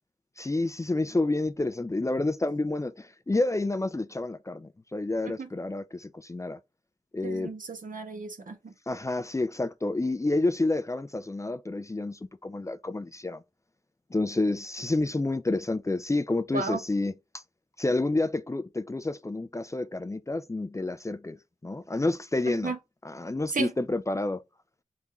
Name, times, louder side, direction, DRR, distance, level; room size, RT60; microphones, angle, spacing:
voice 1, 0.4-6.6 7.1-7.5 8.9-13.4 14.1-17.4 17.8-21.4 21.6-22.7 23.0-24.4, left 2 dB, 20° left, 0.4 m, -29 dB
voice 2, 7.2-8.7 16.5-16.8 22.5-22.8 23.5-23.7, right 4 dB, 75° right, 1.3 m, -33 dB
4.2 x 3.6 x 3.5 m
wide cardioid pair, 80°, 14 cm